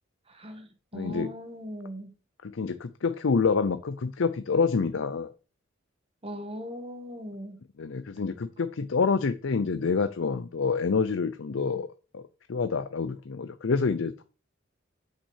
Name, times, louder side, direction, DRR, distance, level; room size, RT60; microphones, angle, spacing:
voice 1, 0.3-2.1 6.2-7.6, equal, 30° right, 7 dB, 1.5 m, -39 dB
voice 2, 0.9-1.3 2.4-5.3 7.8-11.9 12.1-14.2, left 5 dB, 65° left, 12 dB, 0.5 m, -27 dB
6.0 x 5.6 x 6.3 m, 0.35 s
head